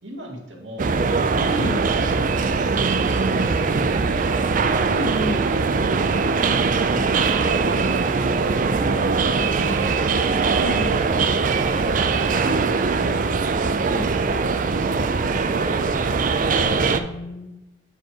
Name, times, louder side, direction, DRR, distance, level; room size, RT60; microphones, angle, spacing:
voice 1, 0.0-3.9 11.5-13.4 14.8-16.9, equal, 80° right, 0 dB, 1.8 m, -39 dB
sound 1, 0.8-17.0, right 4 dB, 45° right, 0.4 m, -21 dB
voice 2, 1.4-1.8 4.9-5.5 10.6-10.9 13.9-14.1 16.9-17.6, equal, 80° left, 4 dB, 1.1 m, -30 dB
7.8 x 4.4 x 4.7 m, 0.94 s
head